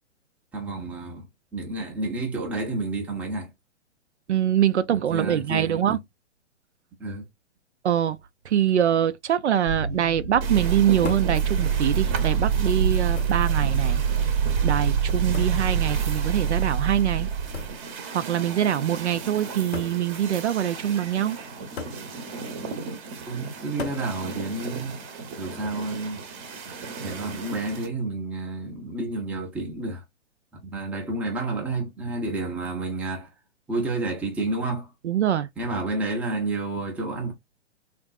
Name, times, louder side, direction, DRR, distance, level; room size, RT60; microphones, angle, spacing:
voice 1, 0.5-1.3 1.5-3.5 5.1-6.0 7.0-7.3 23.3-25.0 25.4-26.2 27.0-30.0 30.6-33.3 33.7-34.9 35.6-37.3, right 2 dB, 5° right, 0.5 m, -30 dB
voice 2, 4.3-6.0 7.8-8.2 8.4-14.0 14.6-17.3 18.1-21.4 35.0-35.5, right 10 dB, 70° right, 0.5 m, -24 dB
sound 1, 9.7-17.9, right 7 dB, 85° right, 1.0 m, -25 dB
sound 2, 10.4-27.9, right 4 dB, 30° right, 0.9 m, -37 dB
sound 3, 11.0-11.4 12.4-12.5 13.2-13.5 15.3-15.7 17.5-17.8 18.9-19.0 19.7-20.0 21.8-22.1 23.8-24.1 25.6-26.0, left 6 dB, 60° left, 0.8 m, -36 dB
3.6 x 2.5 x 2.3 m
figure-of-eight pair, 120°, 36 cm